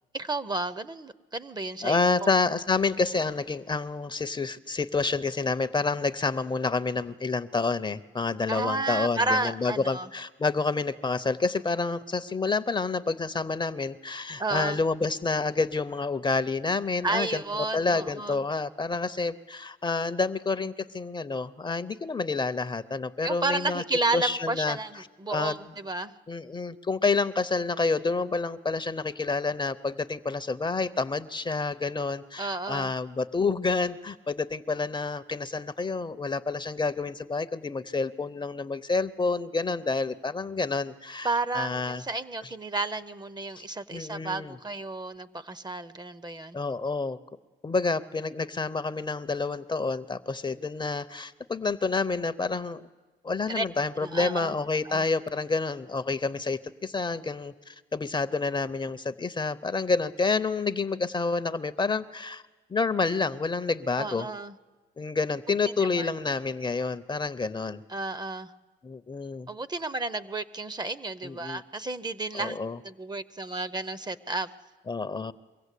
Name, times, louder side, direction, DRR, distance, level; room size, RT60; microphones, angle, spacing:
voice 1, 0.1-2.3 8.5-10.1 14.4-14.8 17.0-18.4 23.2-26.1 32.4-32.9 41.2-46.6 53.5-53.6 54.0-54.5 54.8-55.1 64.0-64.5 65.8-66.1 67.9-68.5 69.5-72.6 72.8-74.5, right 2 dB, 20° right, 16 dB, 0.6 m, -32 dB
voice 2, 1.8-23.8 24.1-24.8 25.3-25.6 26.3-42.0 43.6-43.7 43.9-44.5 46.5-47.2 47.6-52.9 53.2-62.4 62.7-64.3 65.0-67.8 68.8-69.5 71.2-71.6 72.3-72.8 74.9-75.3, left 4 dB, 25° left, 13 dB, 0.6 m, -28 dB
23.5 x 16.0 x 8.3 m, 1.3 s
cardioid pair, 90°, 20 cm